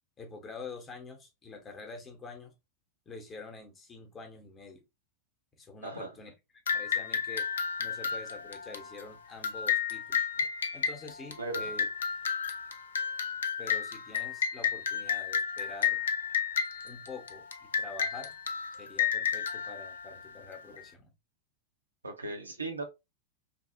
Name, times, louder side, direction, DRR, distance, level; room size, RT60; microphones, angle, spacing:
voice 1, 0.2-2.5 3.1-4.8 5.5-6.3 6.7-7.5 7.8-10.2 10.7-11.9 13.6-16.0 16.8-18.3 18.8-21.1, left 3 dB, 20° left, 0.8 m, -46 dB
sound 1, 6.7-20.8, left 7 dB, 65° left, 0.3 m, -32 dB
voice 2, 22.0-22.8, right 3 dB, 80° right, 0.5 m, -37 dB
2.7 x 2.0 x 2.6 m
figure-of-eight pair, 90°, 0 cm